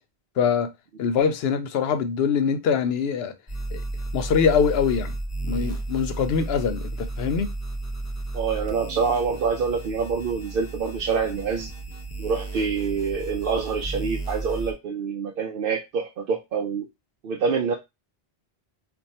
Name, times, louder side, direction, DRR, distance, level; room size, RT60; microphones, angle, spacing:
voice 1, 0.4-0.7 1.0-3.3 3.7-3.8 4.1-5.1 5.5-7.5, left 6 dB, 75° left, 0.8 m, -23 dB
sound 1, 3.5-14.7, right 2 dB, 20° left, 0.5 m, -33 dB
voice 2, 8.3-11.7 12.2-16.9 17.2-17.7, right 5 dB, 65° right, 0.7 m, -26 dB
2.6 x 2.2 x 4.1 m
omnidirectional pair, 1.0 m